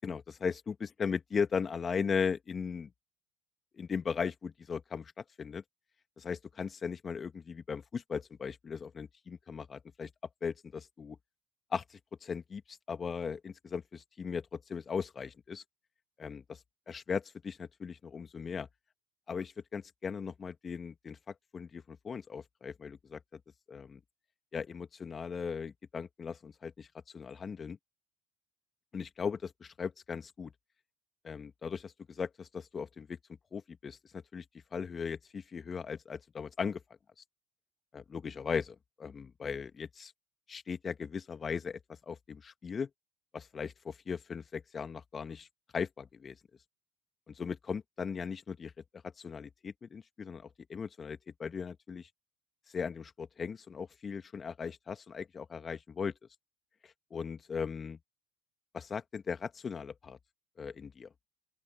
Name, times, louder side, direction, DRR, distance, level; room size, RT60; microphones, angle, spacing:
voice 1, 0.0-2.9 3.7-5.6 6.2-10.1 10.4-11.2 11.7-15.6 16.2-16.6 16.9-18.7 19.3-23.2 23.7-24.0 24.5-26.9 27.1-27.8 28.9-30.5 31.2-33.2 33.5-34.4 34.7-36.8 37.9-40.1 40.5-42.9 43.3-45.5 45.7-46.4 47.3-48.7 49.2-52.1 52.7-56.1 56.8-58.0 58.7-60.2 60.6-61.1, left 6 dB, 30° left, 1.9 m, -38 dB
open air
hypercardioid pair, 75°, 0 cm